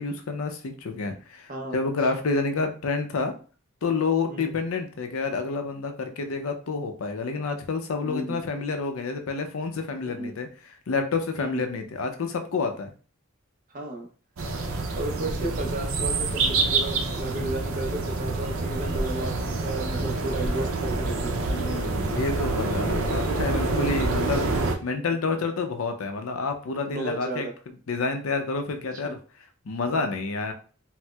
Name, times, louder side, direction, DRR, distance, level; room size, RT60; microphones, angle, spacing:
voice 1, 0.0-3.4 3.8-10.5 10.9-12.9 21.5-24.5 24.8-27.5 27.9-29.2 29.7-30.5, left 4 dB, 75° left, 6 dB, 0.5 m, -29 dB
voice 2, 8.1-8.4 10.0-10.3 11.4-11.6 13.7-14.1 14.7-21.5 26.8-27.5 29.0-29.1, right 1 dB, 40° right, 2 dB, 0.6 m, -34 dB
sound 1, 14.4-24.8, right 3 dB, 80° right, 0.6 m, -27 dB
4.2 x 2.0 x 2.3 m, 0.38 s
head